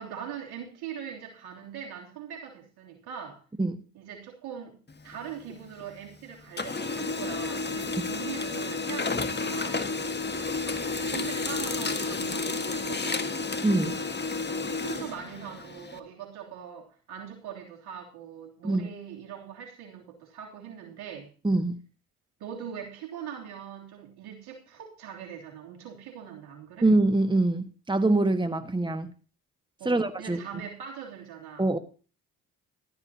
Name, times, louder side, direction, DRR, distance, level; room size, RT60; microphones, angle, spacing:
voice 1, 0.0-3.4 3.9-4.8 5.0-9.8 10.6-10.8 11.1-13.2 14.5-21.3 22.4-26.9 29.8-31.8, right 8 dB, 75° right, 0 dB, 3.3 m, -41 dB
Printer, 4.9-6.1 6.4-16.0, left 3 dB, 25° left, 1.7 m, -31 dB
voice 2, 13.6-14.0 18.6-18.9 21.4-21.8 26.8-29.1 29.8-30.4 31.6-31.8, right 2 dB, 10° right, 9 dB, 1.6 m, -24 dB
14.5 x 13.0 x 2.9 m, 0.37 s
hypercardioid pair, 45°, 38 cm